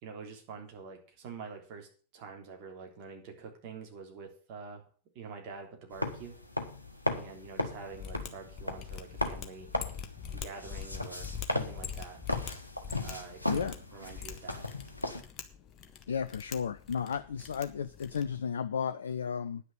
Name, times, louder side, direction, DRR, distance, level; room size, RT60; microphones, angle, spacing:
voice 1, 0.0-1.9 2.1-4.9 5.2-6.4 7.1-9.7 10.3-12.2 13.0-14.6, right 5 dB, 45° right, 2 dB, 3.4 m, -46 dB
sound 1, 5.9-15.2, left 2 dB, 85° left, 1.4 m, -37 dB
Mechanisms, 7.9-18.4, left 8 dB, 35° left, 1.4 m, -44 dB
voice 2, 16.1-19.6, left 7 dB, 70° left, 13 dB, 0.5 m, -33 dB
10.0 x 6.6 x 8.5 m, 0.41 s
figure-of-eight pair, 90°, 0 cm